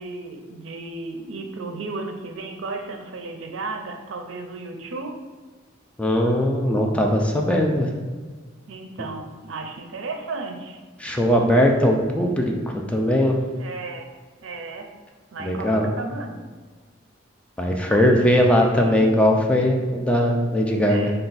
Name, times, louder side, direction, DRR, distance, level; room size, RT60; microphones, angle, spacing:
voice 1, 0.0-5.2 8.7-10.8 13.5-14.1 14.4-14.9 15.3-16.4 17.9-19.1 20.9-21.1, right 3 dB, 75° right, 4 dB, 0.5 m, -34 dB
voice 2, 6.0-7.9 11.0-12.5 12.9-13.4 15.4-15.9 17.6-21.1, equal, 5° left, 1 dB, 0.3 m, -19 dB
4.2 x 2.3 x 3.9 m, 1.4 s
head